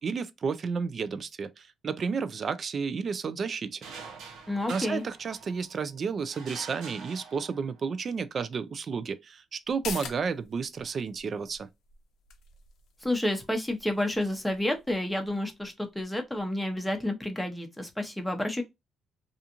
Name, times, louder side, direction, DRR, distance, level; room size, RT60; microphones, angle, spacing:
voice 1, 0.0-3.8 4.7-11.7, right 5 dB, 50° right, 0.3 m, -32 dB
sound 1, 3.8-5.8 6.3-7.9, right 5 dB, 85° right, 0.7 m, -45 dB
voice 2, 4.5-5.0 13.0-18.6, left 1 dB, 5° left, 0.7 m, -30 dB
sound 2, 9.6-16.8 17.1-17.2, left 6 dB, 75° left, 0.5 m, -46 dB
2.4 x 2.4 x 2.8 m
cardioid pair, 90°, 0 cm